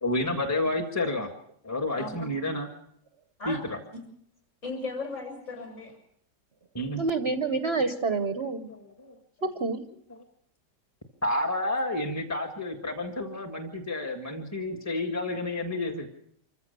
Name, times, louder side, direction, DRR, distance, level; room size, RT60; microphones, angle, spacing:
voice 1, 0.0-1.3 1.6-2.7 3.4-3.6 6.7-7.0 8.7-9.1 11.2-16.1, left 1 dB, 10° left, 1 dB, 1.6 m, -30 dB
voice 2, 2.0-2.3 3.4-3.6 4.6-6.0, left 3 dB, 45° left, 2 dB, 7.2 m, -36 dB
voice 3, 7.0-8.7 9.4-9.8, right 3 dB, 45° right, 8 dB, 1.0 m, -28 dB
26.0 x 15.0 x 6.8 m, 0.70 s
omnidirectional pair, 1.8 m